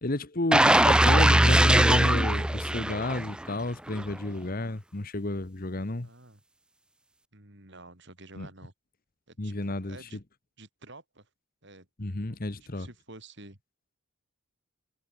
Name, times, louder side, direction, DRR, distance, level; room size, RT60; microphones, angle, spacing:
voice 1, 0.0-6.1 8.4-8.5 9.4-10.1 12.0-12.9, left 2 dB, 40° left, 1.3 m, -31 dB
sound 1, 0.5-3.5 3.9-4.0, right 1 dB, 5° right, 0.4 m, -21 dB
voice 2, 6.0-6.4 7.3-8.7 9.3-10.2 10.6-11.3 11.6-11.9 12.6-13.6, right 2 dB, 55° right, 5.1 m, -50 dB
head